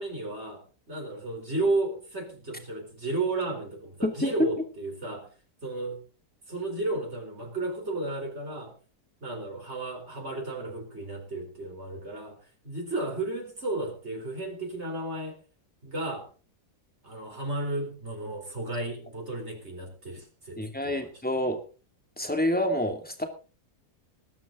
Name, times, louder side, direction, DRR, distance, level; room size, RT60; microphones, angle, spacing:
voice 1, 0.0-5.3 5.6-6.0 6.5-8.7 9.2-12.3 12.6-15.4 15.8-16.3 17.0-21.1, right 2 dB, 40° right, 2 dB, 4.4 m, -33 dB
voice 2, 4.0-4.3 20.6-21.6 22.2-23.2, left 1 dB, 5° left, 4 dB, 2.6 m, -28 dB
20.5 x 11.0 x 3.9 m, 0.36 s
omnidirectional pair, 1.7 m